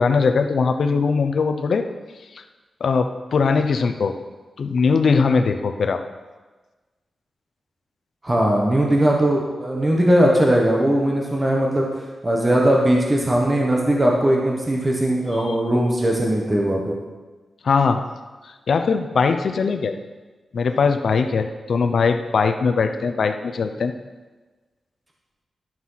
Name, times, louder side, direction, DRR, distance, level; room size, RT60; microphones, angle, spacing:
voice 1, 0.0-1.9 2.3-2.4 2.8-4.1 4.6-6.0 15.5-15.6 17.6-18.1 18.4-20.0 20.5-23.9, left 5 dB, 60° left, 7 dB, 0.7 m, -20 dB
voice 2, 8.2-11.9 12.2-16.9, right 1 dB, 15° right, -2 dB, 1.2 m, -19 dB
12.0 x 6.1 x 5.7 m, 1.3 s
wide cardioid pair, 170°, 0 cm